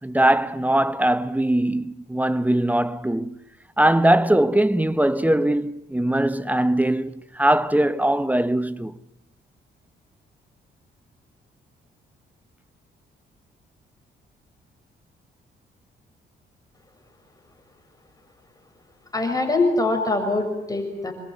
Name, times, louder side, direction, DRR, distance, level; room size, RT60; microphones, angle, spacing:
voice 1, 0.0-3.4 3.8-8.9, right 1 dB, 10° right, 1.0 m, -21 dB
voice 2, 19.1-21.1, left 2 dB, 15° left, 6.7 m, -23 dB
27.5 x 22.5 x 9.4 m
cardioid pair, 90°, 20 cm